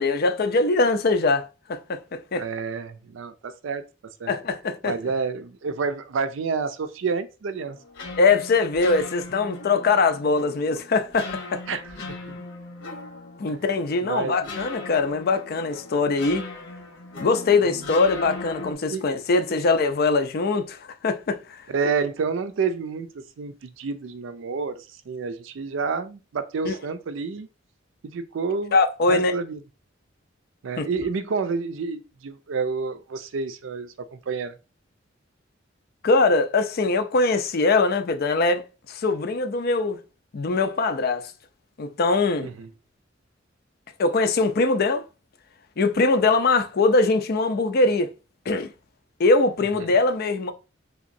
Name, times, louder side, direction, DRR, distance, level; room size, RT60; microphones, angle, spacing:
voice 1, 0.0-1.4 1.7-2.4 4.3-4.9 8.2-11.6 13.4-16.5 17.2-21.6 26.6-26.8 28.7-29.4 30.8-30.9 36.0-38.6 38.9-40.0 40.3-41.3 41.8-42.5 44.0-45.1 45.8-48.1 48.5-48.7 49.2-50.5, left 3 dB, 55° left, 0.4 m, -22 dB
voice 2, 2.3-3.8 4.2-4.3 4.8-7.8 11.7-11.8 12.3-12.4 13.5-13.6 14.1-14.5 17.7-17.9 18.9-19.1 19.6-19.7 21.7-27.5 28.0-28.8 29.1-29.6 30.6-33.9 34.3-34.5 42.4-42.7 49.8-49.9, right 5 dB, 80° right, 0.4 m, -29 dB
sound 1, 7.6-18.7, left 2 dB, 75° left, 1.1 m, -39 dB
3.5 x 2.8 x 2.6 m
head